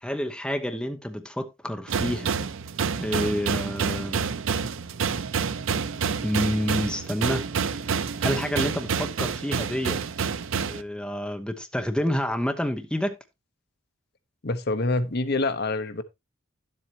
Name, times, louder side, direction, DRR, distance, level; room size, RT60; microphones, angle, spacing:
voice 1, 0.0-2.4 3.0-4.2 6.2-7.5 7.8-10.0 10.7-13.2, equal, 5° left, 0.9 m, -29 dB
sound 1, 1.9-10.8, right 6 dB, 75° right, 0.6 m, -28 dB
voice 2, 14.4-16.0, left 2 dB, 55° left, 0.9 m, -26 dB
11.0 x 7.8 x 2.8 m
head